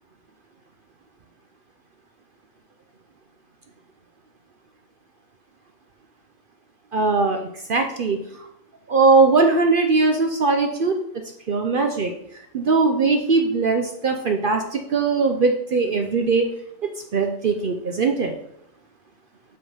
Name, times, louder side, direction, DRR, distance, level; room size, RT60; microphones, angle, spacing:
voice 1, 6.9-8.2 8.9-11.0 11.5-12.1 12.5-16.5 17.1-18.3, right 4 dB, 60° right, 5 dB, 0.5 m, -20 dB
5.4 x 5.3 x 5.5 m, 0.77 s
omnidirectional pair, 1.6 m